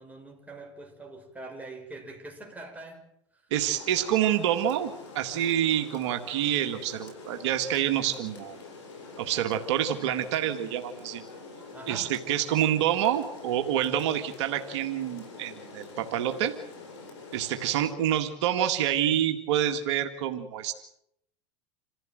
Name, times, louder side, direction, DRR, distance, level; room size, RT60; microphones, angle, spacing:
voice 1, 0.0-3.1 11.7-12.2, right 2 dB, 10° right, 6.3 m, -43 dB
voice 2, 3.5-4.9 5.2-8.6 9.2-11.2 11.9-16.5 17.3-20.7, right 11 dB, 75° right, 2.0 m, -27 dB
Rain, 3.6-17.9, left 3 dB, 80° left, 7.4 m, -46 dB
27.5 x 15.5 x 7.7 m
supercardioid pair, 105°, 15 cm